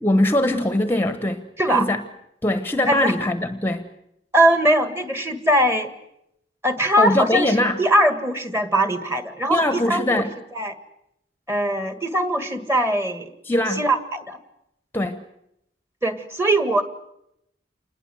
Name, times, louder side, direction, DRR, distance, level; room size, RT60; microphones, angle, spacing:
voice 1, 0.0-2.0 2.4-3.9 6.9-7.8 9.5-10.3 13.4-13.8 14.9-15.2, left 1 dB, 10° left, 1.0 m, -22 dB
voice 2, 4.3-5.9 6.6-7.5 7.8-10.2 10.6-10.8 11.5-13.3 13.8-14.4 16.0-16.8, right 1 dB, 15° right, 1.8 m, -21 dB
28.0 x 21.0 x 7.8 m
head